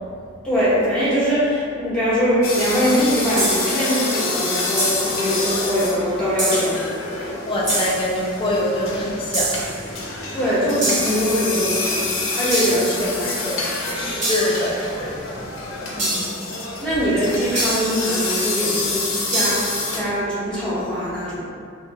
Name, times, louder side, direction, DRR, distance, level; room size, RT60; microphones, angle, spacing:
voice 1, 0.4-6.8 10.3-12.1 12.4-14.0 15.9-16.3 16.8-19.0 19.3-19.6 19.9-21.4, equal, 5° left, -11 dB, 1.0 m, -22 dB
sound 1, 2.4-20.0, left 3 dB, 85° left, 0.6 m, -27 dB
sound 2, 3.4-3.9 4.8-5.3 6.4-6.9 7.7-8.1 9.3-9.9 10.8-11.4 12.5-13.0 14.2-14.7 16.0-16.5 17.5-18.1 19.3-19.9, right 1 dB, 35° right, 1.0 m, -25 dB
voice 2, 7.4-9.7 13.0-15.5, left 1 dB, 25° left, -4 dB, 0.5 m, -25 dB
2.7 x 2.3 x 4.0 m, 2.3 s
head